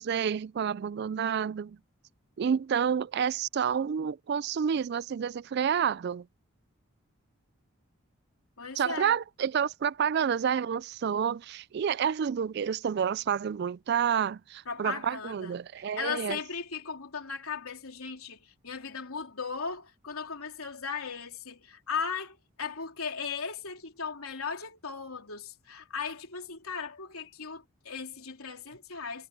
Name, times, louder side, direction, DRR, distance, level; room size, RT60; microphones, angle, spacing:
voice 1, 0.0-1.8 2.4-6.3 8.8-16.4, right 7 dB, 50° right, 0.3 m, -29 dB
voice 2, 8.6-9.1 14.7-15.6 16.0-29.3, left 5 dB, 85° left, 3.6 m, -37 dB
head